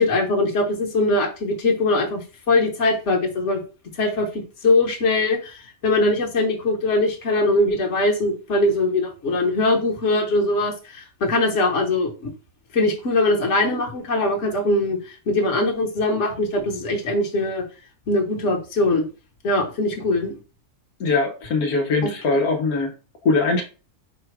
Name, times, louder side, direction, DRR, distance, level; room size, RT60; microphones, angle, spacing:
voice 1, 0.0-3.6 4.0-12.3 12.7-17.6 18.1-19.1 19.4-20.3, left 2 dB, 55° left, 1 dB, 1.4 m, -21 dB
voice 2, 21.0-22.9 23.2-23.6, left 3 dB, 85° left, 3 dB, 1.2 m, -21 dB
4.9 x 2.3 x 4.5 m, 0.34 s
omnidirectional pair, 1.5 m